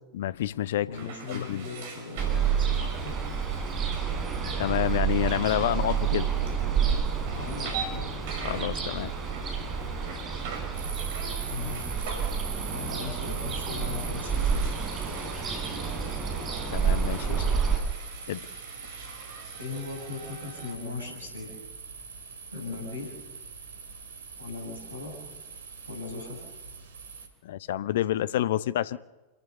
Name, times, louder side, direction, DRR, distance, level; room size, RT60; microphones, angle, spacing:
voice 1, 0.1-1.6 4.6-6.3 8.4-9.1 16.7-17.4 18.3-18.4 27.4-29.0, left 12 dB, 55° left, 18 dB, 0.6 m, -28 dB
sound 1, 0.9-20.7, right 5 dB, 50° right, 5.7 m, -44 dB
voice 2, 0.9-3.2 7.3-8.1 11.4-11.8 12.7-14.7 19.6-21.5 22.5-23.2 24.4-25.2 25.9-26.4, left 4 dB, 85° right, 0 dB, 6.2 m, -38 dB
Ocean, 2.2-17.8, right 6 dB, 25° right, 4.4 m, -29 dB
sound 2, 10.7-27.3, right 5 dB, 65° right, 2.7 m, -42 dB
27.5 x 15.0 x 6.9 m, 1.2 s
figure-of-eight pair, 90°, 0 cm